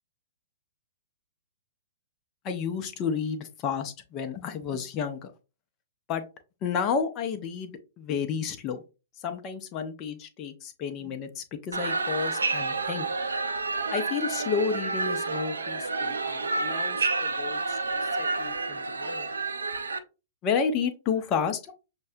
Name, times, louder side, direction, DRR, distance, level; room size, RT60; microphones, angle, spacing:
voice 1, 2.4-5.3 6.1-6.2 6.6-8.8 9.2-13.0 13.9-17.8 18.2-19.3 20.4-21.8, left 6 dB, 30° left, 6 dB, 0.7 m, -31 dB
sound 1, 11.7-20.0, right 3 dB, 75° right, 0.5 m, -29 dB
6.4 x 2.2 x 2.6 m, 0.30 s
figure-of-eight pair, 110°, 0 cm